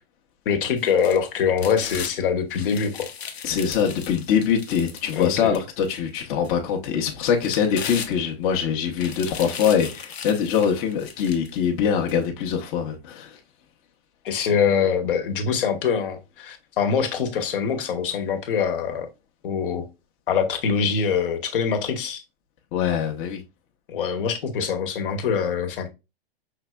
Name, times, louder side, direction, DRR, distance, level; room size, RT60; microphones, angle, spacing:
voice 1, 0.4-3.1 5.1-5.5 14.2-19.1 19.4-19.8 20.3-22.2 23.9-25.9, left 6 dB, 60° left, 1.3 m, -24 dB
sound 1, 0.8-2.1 2.5-5.9 6.4-6.5 7.2-8.5 8.9-11.6 12.1-12.2, left 7 dB, 85° left, 1.0 m, -37 dB
voice 2, 3.4-13.4 22.7-23.4, left 7 dB, 35° left, 1.0 m, -23 dB
5.7 x 3.3 x 2.3 m
hypercardioid pair, 135°, 30 cm